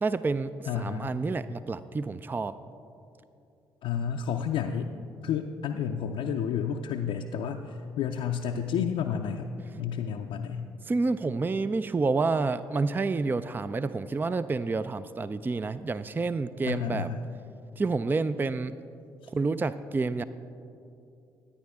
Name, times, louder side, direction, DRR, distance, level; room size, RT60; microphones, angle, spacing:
voice 1, 0.0-2.5 10.8-17.1 17.8-18.8 19.3-20.2, right 3 dB, 20° right, 14 dB, 0.3 m, -29 dB
voice 2, 0.7-1.1 3.8-4.9 5.2-9.5 9.8-10.7 16.6-17.2, left 7 dB, 70° left, 2 dB, 0.5 m, -31 dB
14.0 x 9.7 x 3.5 m, 2.6 s
hypercardioid pair, 50°, 10 cm